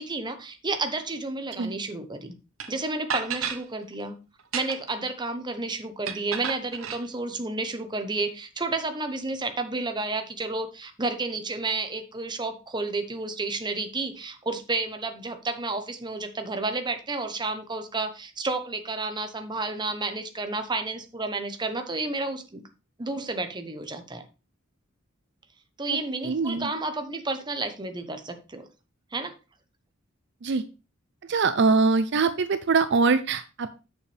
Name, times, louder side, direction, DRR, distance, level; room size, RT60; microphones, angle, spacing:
voice 1, 0.0-2.3 2.7-4.2 4.5-22.6 23.0-24.2 25.8-28.7 29.1-29.3, right 3 dB, 20° right, 7 dB, 1.0 m, -31 dB
sound 1, 2.6-2.7 3.1-3.6 4.4-5.0 6.1-7.0, right 7 dB, 85° right, 1.0 m, -32 dB
voice 2, 25.9-26.7 30.4-30.6 31.3-33.7, right 4 dB, 60° right, 12 dB, 0.5 m, -23 dB
8.3 x 6.9 x 3.3 m, 0.30 s
head